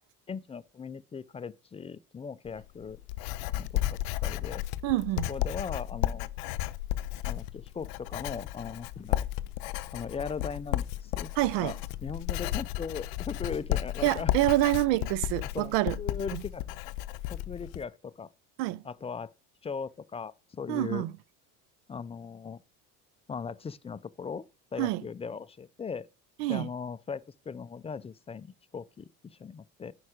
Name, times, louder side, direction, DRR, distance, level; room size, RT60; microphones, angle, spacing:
voice 1, 0.3-3.0 3.5-4.6 5.3-6.3 7.3-9.3 9.9-11.3 11.6-14.3 15.3-15.7 16.0-16.9 17.3-18.3 18.8-19.3 19.6-21.0 21.9-22.6 23.3-24.4 24.7-26.1 26.5-29.9, left 5 dB, 15° left, 0.3 m, -39 dB
Writing, 2.5-17.8, left 15 dB, 70° left, 0.6 m, -33 dB
voice 2, 4.8-5.3 11.4-11.7 14.0-16.0 16.3-16.4 18.6-18.8 20.7-21.1 24.8-25.0 26.4-26.7, right 17 dB, 70° right, 0.6 m, -27 dB
9.8 x 4.9 x 4.9 m
hypercardioid pair, 70°, 46 cm